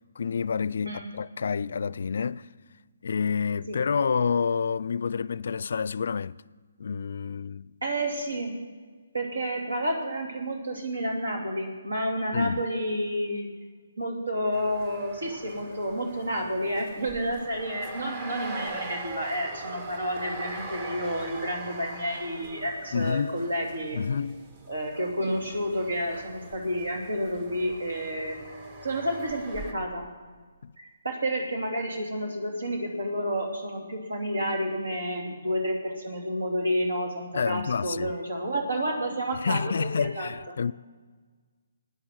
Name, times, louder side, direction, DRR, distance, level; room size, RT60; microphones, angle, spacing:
voice 1, 0.2-2.5 3.0-6.4 6.8-7.7 12.3-12.6 22.9-23.4 23.9-24.4 30.6-30.7 37.3-38.1 39.4-40.7, left 6 dB, 60° left, 0.3 m, -28 dB
voice 2, 7.8-8.6 9.1-13.5 14.0-24.0 24.7-28.4 28.8-30.0 30.8-40.6, equal, 80° right, 2.8 m, -30 dB
sound 1, 14.5-29.7, right 3 dB, 35° right, 1.4 m, -42 dB
13.0 x 9.3 x 7.6 m
figure-of-eight pair, 145°, 0 cm